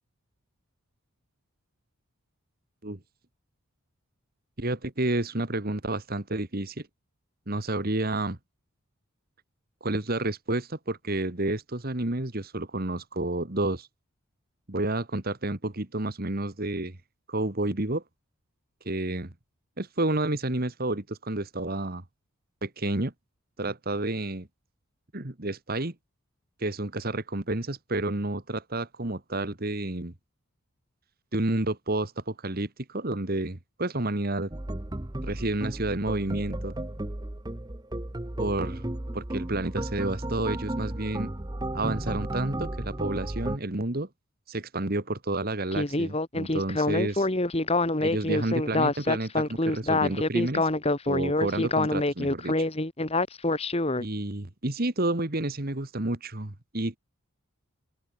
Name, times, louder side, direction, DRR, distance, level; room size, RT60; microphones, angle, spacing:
voice 1, 4.6-6.9 7.5-8.4 9.8-13.9 14.7-17.0 17.3-18.0 18.9-19.3 19.8-22.0 22.6-23.1 23.6-24.5 25.1-25.9 26.6-30.1 31.3-34.5 35.2-36.8 38.4-38.8 39.1-41.3 41.7-44.1 44.5-47.3 48.0-50.7 51.1-52.5 54.0-57.0, right 2 dB, 45° right, 1.7 m, -30 dB
sound 1, 34.5-43.6, right 1 dB, 20° right, 0.9 m, -34 dB
Speech synthesizer, 45.7-54.0, left 2 dB, 25° left, 1.6 m, -26 dB
head